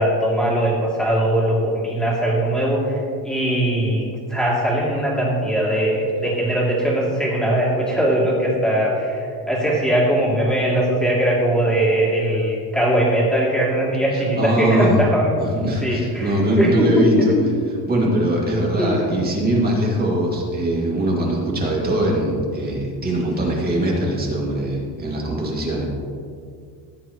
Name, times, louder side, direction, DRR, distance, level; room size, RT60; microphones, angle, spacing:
voice 1, 0.0-15.4 15.8-17.3 18.8-19.2, right 1 dB, ahead, -5 dB, 2.9 m, -20 dB
voice 2, 14.1-15.0 15.4-17.3 17.8-25.9, right 1 dB, 25° right, -3 dB, 2.4 m, -21 dB
16.5 x 8.1 x 3.1 m, 2.3 s
cardioid pair, 145°, 40 cm